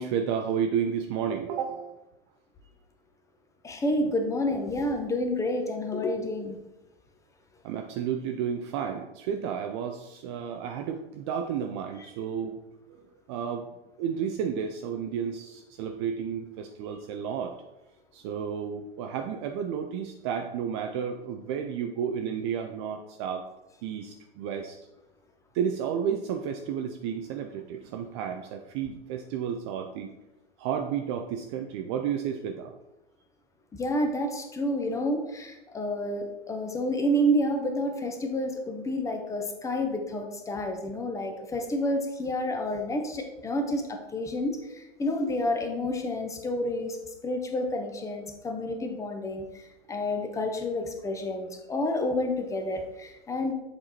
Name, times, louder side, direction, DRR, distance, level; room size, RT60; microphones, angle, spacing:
voice 1, 0.0-2.0 7.6-12.6 13.3-13.7 14.0-17.6 18.1-23.4 23.8-24.8 25.5-30.1 30.6-32.7, right 7 dB, 30° right, 5 dB, 0.4 m, -32 dB
voice 2, 3.6-6.6 33.7-47.0 47.2-49.5 49.9-53.5, left 1 dB, 10° left, 4 dB, 0.6 m, -29 dB
7.6 x 4.7 x 2.8 m, 0.97 s
figure-of-eight pair, 100°, 31 cm